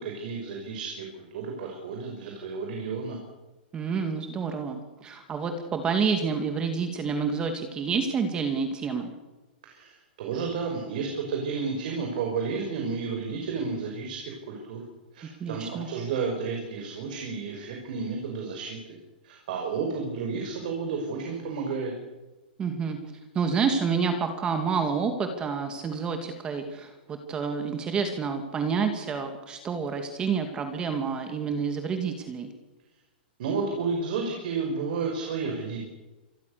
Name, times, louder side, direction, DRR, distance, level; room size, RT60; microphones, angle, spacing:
voice 1, 0.0-3.2 9.6-14.8 15.1-18.8 19.2-21.9 33.4-35.8, right 5 dB, 55° right, 1 dB, 6.1 m, -32 dB
voice 2, 3.7-9.1 15.4-15.9 22.6-23.0 23.3-32.5, right 5 dB, 15° right, 6 dB, 2.4 m, -28 dB
27.5 x 22.0 x 6.9 m, 1.1 s
hypercardioid pair, 160°, 6 cm